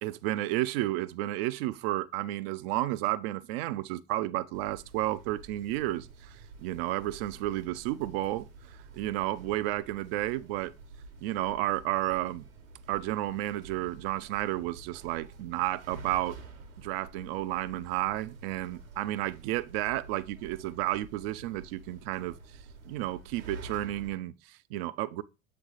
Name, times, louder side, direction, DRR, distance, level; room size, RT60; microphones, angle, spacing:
voice 1, 0.0-6.4 6.6-8.5 8.9-10.7 11.2-12.5 12.9-16.4 16.8-22.4 22.9-25.2, right 15 dB, 50° right, 0.5 m, -32 dB
sound 1, 4.5-24.1, right 3 dB, 70° right, 1.3 m, -49 dB
7.7 x 3.3 x 3.9 m
figure-of-eight pair, 75°, 40 cm